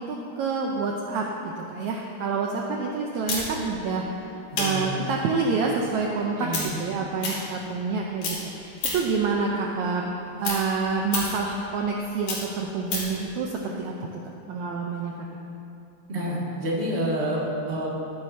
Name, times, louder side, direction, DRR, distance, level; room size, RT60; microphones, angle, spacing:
voice 1, 0.0-4.3 4.5-10.1 10.4-14.1 14.5-15.1, right 4 dB, 80° right, 0 dB, 1.7 m, -28 dB
sound 1, 3.3-7.9 8.2-9.2 9.6-13.2, left 3 dB, 65° left, 3.8 m, -32 dB
voice 2, 4.5-5.2 6.4-6.7 16.1-17.9, equal, 25° right, -5 dB, 1.4 m, -28 dB
14.0 x 12.0 x 2.8 m, 2.7 s
omnidirectional pair, 4.0 m